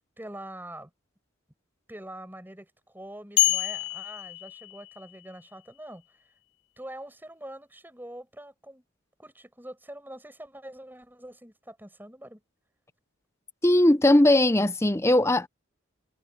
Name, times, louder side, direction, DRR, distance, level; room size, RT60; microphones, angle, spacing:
voice 1, 0.2-0.9 1.9-6.0 6.8-8.8 9.2-12.4, right 1 dB, 10° right, 5.5 m, -44 dB
sound 1, 3.4-5.2, left 13 dB, 55° left, 1.2 m, -27 dB
voice 2, 13.6-15.5, left 1 dB, 15° left, 0.6 m, -19 dB
head